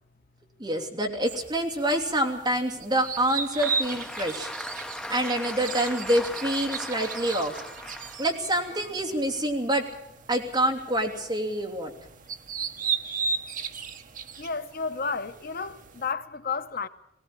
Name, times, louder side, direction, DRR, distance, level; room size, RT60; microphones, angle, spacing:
voice 1, 0.6-4.5 5.1-7.5 8.2-9.9 10.3-11.9, right 1 dB, 25° right, 2.9 m, -26 dB
sound 1, 1.3-16.1, right 5 dB, 45° right, 1.1 m, -36 dB
Applause, 3.1-9.5, left 1 dB, 5° left, 0.8 m, -39 dB
Wind instrument woodwind instrument, 5.5-8.9, right 4 dB, 75° right, 4.6 m, -50 dB
voice 2, 14.4-16.9, left 5 dB, 55° left, 0.8 m, -32 dB
20.0 x 17.0 x 9.0 m
head